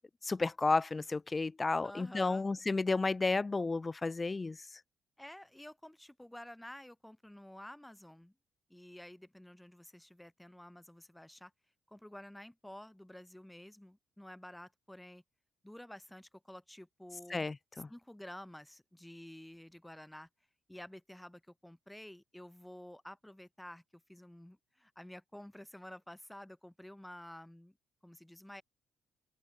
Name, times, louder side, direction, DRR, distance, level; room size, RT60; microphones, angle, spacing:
voice 1, 0.2-4.6 17.3-17.9, left 3 dB, 25° left, 2.0 m, -32 dB
voice 2, 1.8-2.4 5.2-8.3 8.7-11.5 11.9-15.2 15.6-17.4 17.9-20.3 20.7-27.8 28.0-28.6, left 1 dB, 5° left, 5.0 m, -51 dB
hypercardioid pair, 45°, 0 cm